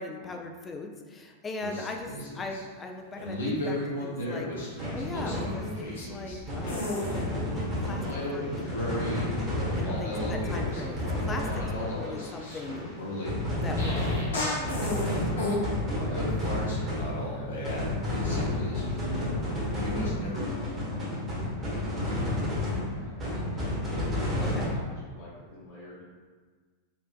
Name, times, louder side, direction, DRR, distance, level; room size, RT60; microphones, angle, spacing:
voice 1, 0.0-8.0 8.3-8.9 9.8-12.9 13.6-15.3 24.4-24.8, left 3 dB, 20° left, 2 dB, 0.3 m, -40 dB
sound 1, 1.6-2.6 3.1-6.4 6.7-7.2 7.8-9.3 9.5-15.6 16.1-19.4 19.8-20.4, left 1 dB, 70° left, 0.7 m, -34 dB
sound 2, 4.8-13.0 13.2-24.7, left 1 dB, 25° right, 1.2 m, -31 dB
voice 2, 9.6-10.1 11.7-12.0 15.9-22.4 22.7-26.0, equal, 50° left, -9 dB, 1.2 m, -46 dB
4.3 x 2.4 x 2.3 m, 1.5 s
figure-of-eight pair, 90°, 0 cm